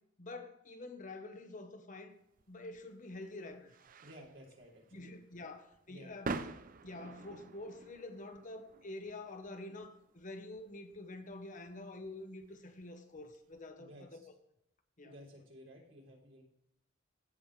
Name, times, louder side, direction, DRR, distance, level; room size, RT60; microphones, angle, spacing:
voice 1, 0.2-2.2 2.5-3.8 4.9-14.3 15.0-15.1, left 2 dB, 40° left, 1.0 m, -47 dB
sound 1, 2.3-13.6, right 4 dB, 45° right, 0.5 m, -48 dB
voice 2, 4.0-5.1 5.9-6.1 13.8-14.2 15.0-16.4, equal, 80° right, 3.5 m, -55 dB
15.5 x 5.4 x 3.2 m
head